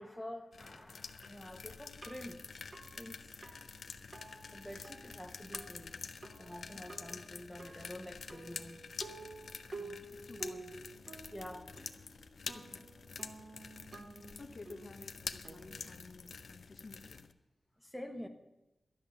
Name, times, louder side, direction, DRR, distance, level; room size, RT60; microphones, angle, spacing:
voice 1, 0.0-3.3 4.5-8.9 11.3-11.7 17.8-18.3, left 1 dB, 5° left, 4 dB, 1.1 m, -48 dB
sound 1, 0.5-17.3, left 5 dB, 75° left, 0.7 m, -48 dB
sound 2, 1.2-16.6, right 3 dB, 40° right, 1.2 m, -52 dB
voice 2, 9.7-10.8 12.5-12.9 14.4-17.2, left 3 dB, 50° left, 6 dB, 1.0 m, -52 dB
12.0 x 10.5 x 7.1 m, 0.95 s
wide cardioid pair, 135°, 0 cm